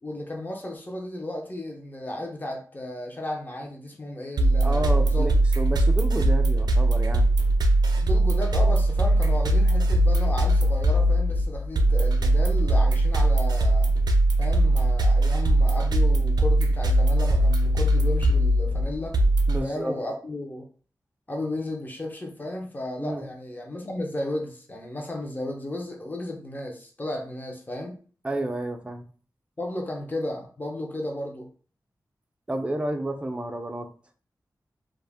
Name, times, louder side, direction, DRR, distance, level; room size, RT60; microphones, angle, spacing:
voice 1, 0.0-5.3 7.9-13.9 14.4-19.2 19.6-20.7 21.3-28.0 29.6-31.5, left 1 dB, 25° left, 1 dB, 0.7 m, -34 dB
sound 1, 4.4-19.6, right 1 dB, 90° right, 0.4 m, -21 dB
voice 2, 4.6-7.3 19.5-20.0 23.0-23.3 28.2-29.1 32.5-33.9, right 1 dB, 15° right, 5 dB, 0.4 m, -31 dB
2.5 x 2.1 x 3.3 m, 0.41 s
wide cardioid pair, 95°, 7 cm